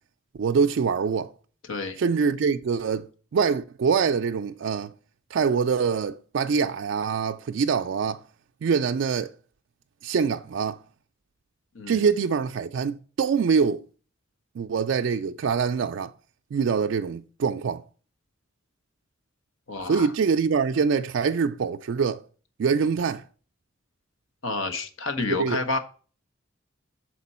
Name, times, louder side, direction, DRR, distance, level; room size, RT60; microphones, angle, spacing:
voice 1, 0.3-1.3 2.0-4.9 5.3-8.2 8.6-9.3 10.0-10.8 11.9-13.8 14.6-16.1 16.5-17.8 19.9-22.2 22.6-23.2 25.2-25.6, right 5 dB, 65° right, 0.3 m, -24 dB
voice 2, 19.7-20.1 24.4-25.8, left 3 dB, 80° left, 1.0 m, -29 dB
6.7 x 4.3 x 4.2 m
head